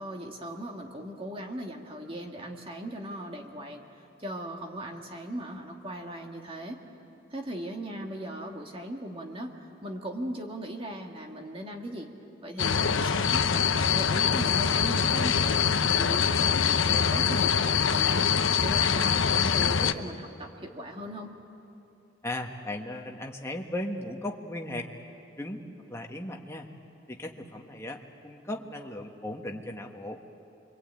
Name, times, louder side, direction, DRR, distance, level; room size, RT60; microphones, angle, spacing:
voice 1, 0.0-3.8 4.2-6.8 7.3-12.1 12.4-21.3, right 1 dB, 25° right, 2 dB, 2.0 m, -38 dB
sound 1, 12.6-19.9, left 6 dB, 75° left, 0.8 m, -24 dB
voice 2, 22.2-24.9 25.4-25.6 25.9-26.7 27.1-30.2, left 1 dB, 15° left, 1 dB, 1.5 m, -36 dB
26.5 x 23.5 x 9.0 m, 2.7 s
head